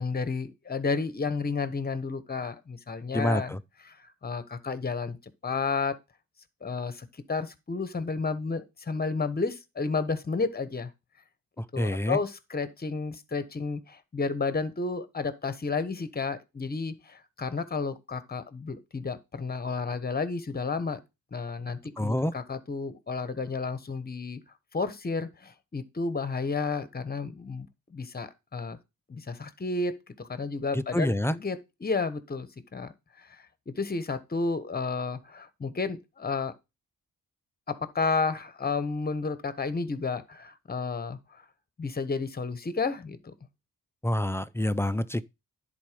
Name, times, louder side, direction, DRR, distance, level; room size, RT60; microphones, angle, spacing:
voice 1, 0.0-3.5 3.8-5.2 5.4-6.0 6.6-10.9 11.7-21.0 21.3-24.4 24.7-28.8 29.1-32.9 33.2-36.5 37.7-41.4 41.8-43.3, left 4 dB, 25° left, 1.1 m, -32 dB
voice 2, 3.1-3.6 11.6-12.2 22.0-22.3 30.7-31.4 44.0-45.2, left 1 dB, 5° left, 0.4 m, -27 dB
10.5 x 4.3 x 5.1 m
cardioid pair, 95°, 34 cm